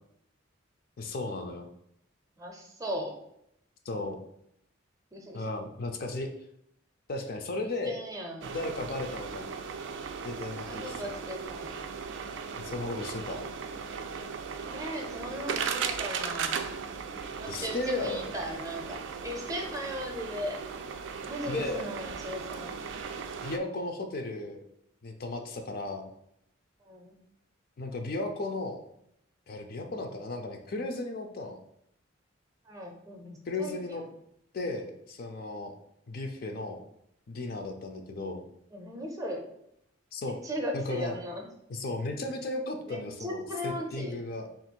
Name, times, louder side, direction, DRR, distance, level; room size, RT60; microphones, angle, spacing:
voice 1, 1.0-1.7 3.9-4.2 5.3-6.3 7.1-8.0 8.5-9.5 10.2-11.2 12.6-13.4 17.5-18.3 21.4-21.9 23.4-24.6 25.0-26.1 27.8-28.8 29.5-31.6 33.5-34.0 34.5-35.7 36.1-36.8 37.3-38.4 40.1-40.4 40.7-41.2 41.7-44.5, left 2 dB, 50° left, 5 dB, 0.4 m, -35 dB
voice 2, 2.4-3.1 5.1-5.4 7.8-8.5 10.5-11.9 14.6-16.7 17.4-20.6 21.3-22.7 26.8-27.2 32.7-34.0 38.7-39.4 40.4-41.5 42.9-44.2, equal, 15° right, 2 dB, 0.5 m, -37 dB
sound 1, 8.4-23.6, right 6 dB, 65° right, 0.3 m, -37 dB
3.4 x 2.5 x 4.5 m, 0.75 s
head